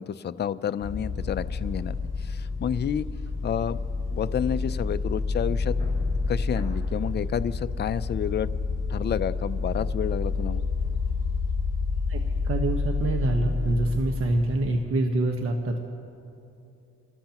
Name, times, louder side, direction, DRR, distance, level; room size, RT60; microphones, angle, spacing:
voice 1, 0.0-3.1 3.4-3.8 4.1-5.7 6.3-8.5 8.9-10.6, left 8 dB, 35° left, 12 dB, 0.5 m, -30 dB
sound 1, 0.8-14.8, left 4 dB, 15° left, 2.9 m, -29 dB
voice 2, 12.4-15.8, right 2 dB, 45° right, 3 dB, 1.2 m, -26 dB
29.5 x 13.0 x 3.0 m, 2.7 s
cardioid pair, 90°, 30 cm